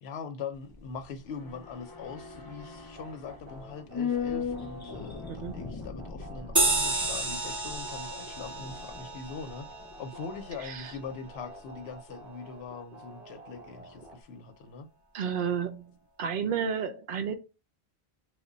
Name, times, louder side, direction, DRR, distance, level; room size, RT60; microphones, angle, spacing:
voice 1, 0.0-9.7 10.0-14.9, left 5 dB, 85° left, 0.9 m, -42 dB
sound 1, 0.5-11.0 11.3-11.4, left 6 dB, 40° left, 0.3 m, -39 dB
sound 2, 2.9-14.2, equal, 45° right, 1.0 m, -49 dB
voice 2, 5.3-5.6 10.6-10.9 15.1-17.4, right 7 dB, 65° right, 0.7 m, -31 dB
sound 3, 6.6-11.5, right 2 dB, 25° right, 0.4 m, -32 dB
3.1 x 2.1 x 3.8 m
omnidirectional pair, 1.0 m